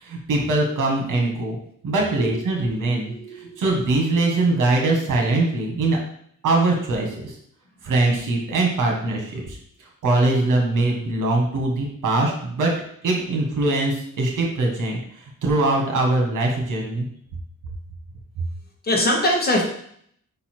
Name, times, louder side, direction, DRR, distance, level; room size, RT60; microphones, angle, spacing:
voice 1, 0.0-1.6 1.8-6.0 6.4-7.3 7.8-12.7 13.0-17.1, right 2 dB, 85° right, 0 dB, 1.7 m, -22 dB
voice 2, 2.7-3.6 18.8-19.6, left 1 dB, 30° left, -1 dB, 1.6 m, -23 dB
5.3 x 4.2 x 4.5 m, 0.66 s
wide cardioid pair, 145°, 31 cm